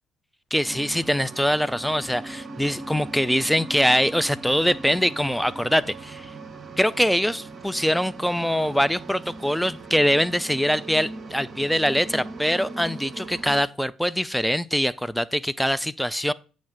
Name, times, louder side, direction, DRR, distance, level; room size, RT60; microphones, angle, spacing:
voice 1, 0.5-6.3 6.8-16.3, equal, ahead, 0.4 m, -23 dB
sound 1, 0.6-13.6, right 3 dB, 35° right, 0.8 m, -39 dB
8.5 x 3.1 x 5.9 m
figure-of-eight pair, 50°, 0 cm